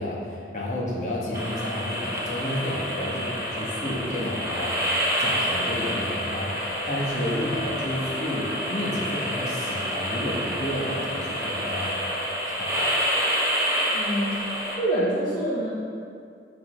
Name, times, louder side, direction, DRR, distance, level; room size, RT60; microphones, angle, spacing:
voice 1, 0.0-4.8 5.2-12.1 12.6-13.0, left 1 dB, 45° left, -5 dB, 1.4 m, -31 dB
sound 1, 1.3-14.7, equal, 20° right, 1.4 m, -28 dB
voice 2, 13.9-15.7, right 1 dB, 25° left, -9 dB, 1.0 m, -26 dB
7.5 x 4.1 x 5.6 m, 2.3 s
head